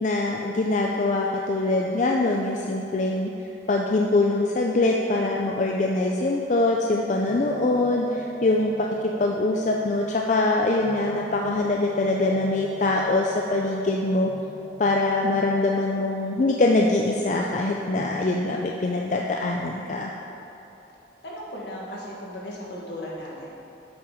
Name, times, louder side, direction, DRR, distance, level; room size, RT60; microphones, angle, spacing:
voice 1, 0.0-3.3 3.7-8.9 9.2-14.3 14.8-20.1, left 2 dB, 40° left, 0 dB, 0.4 m, -23 dB
sound 1, 7.2-15.5, right 1 dB, 55° right, 1.3 m, -41 dB
voice 2, 21.2-23.5, equal, 70° left, -4 dB, 1.6 m, -36 dB
8.2 x 5.9 x 4.9 m, 3.0 s
head